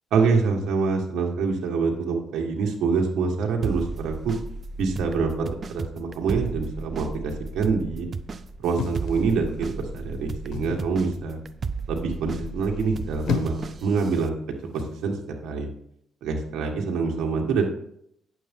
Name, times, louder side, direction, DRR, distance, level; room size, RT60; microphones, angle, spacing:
voice 1, 0.1-4.3 4.8-8.1 8.6-11.4 11.9-14.3 14.7-15.2 15.4-15.7 16.2-17.6, right 4 dB, 80° right, 1 dB, 1.6 m, -25 dB
sound 1, 3.6-14.3, right 4 dB, 40° right, 0.6 m, -35 dB
sound 2, 8.7-9.8 10.5-10.9 12.9-13.8 14.7-15.0, left 6 dB, 70° left, 1.2 m, -31 dB
9.5 x 7.1 x 3.6 m, 0.71 s
cardioid pair, 90°, 0 cm